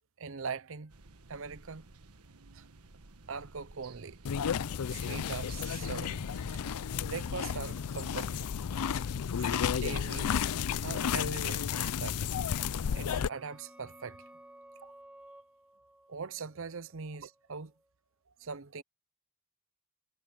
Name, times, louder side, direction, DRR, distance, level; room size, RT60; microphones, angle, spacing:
voice 1, 0.2-0.9 1.3-1.9 2.5-2.7 3.3-4.2 4.9-6.2 7.0-8.5 9.4-10.4 10.8-12.3 12.9-14.2 14.8-14.9 16.1-17.7 18.4-18.8, right 5 dB, 60° right, 0.7 m, -41 dB
sound 1, 0.9-8.9, right 3 dB, 85° right, 1.4 m, -56 dB
sound 2, 4.2-13.3, left 7 dB, 90° left, 0.5 m, -32 dB
sound 3, 12.4-17.9, right 1 dB, 5° right, 2.1 m, -56 dB
head